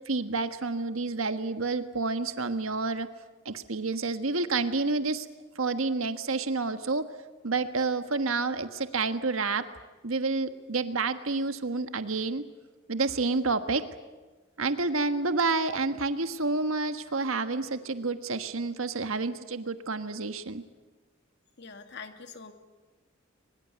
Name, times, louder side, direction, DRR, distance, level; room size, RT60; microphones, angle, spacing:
voice 1, 0.1-3.1 3.4-5.3 5.5-7.0 7.4-9.7 10.0-12.4 12.9-13.8 14.6-20.6, right 3 dB, 85° right, 9 dB, 1.4 m, -29 dB
voice 2, 21.6-22.5, left 5 dB, 55° left, 7 dB, 2.3 m, -44 dB
23.0 x 21.0 x 9.4 m, 1.3 s
head